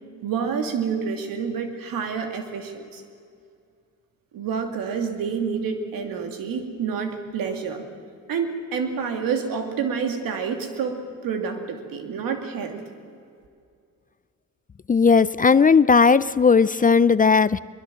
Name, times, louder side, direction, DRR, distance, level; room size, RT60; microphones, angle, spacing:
voice 1, 0.2-3.0 4.3-7.8 8.3-12.8, right 6 dB, 80° right, 5 dB, 2.7 m, -28 dB
voice 2, 14.9-17.6, left 5 dB, 25° left, 17 dB, 0.5 m, -16 dB
22.5 x 21.5 x 7.6 m, 2.3 s
supercardioid pair, 70°, 34 cm